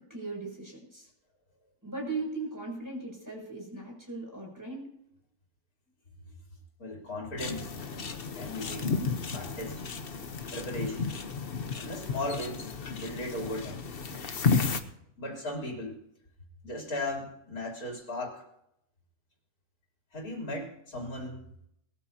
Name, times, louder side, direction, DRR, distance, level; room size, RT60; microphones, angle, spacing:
voice 1, 0.1-1.1 1.8-4.9 9.3-9.6, right 3 dB, 10° right, -1 dB, 7.4 m, -38 dB
voice 2, 6.8-7.7 8.4-9.0 9.3-9.8 10.5-11.1 11.8-13.9 15.2-16.0 16.6-18.4 20.1-21.4, left 1 dB, 80° left, -1 dB, 3.8 m, -37 dB
sound 1, 7.4-14.8, left 5 dB, 45° left, 1.1 m, -33 dB
21.0 x 14.0 x 2.9 m, 0.75 s
omnidirectional pair, 1.5 m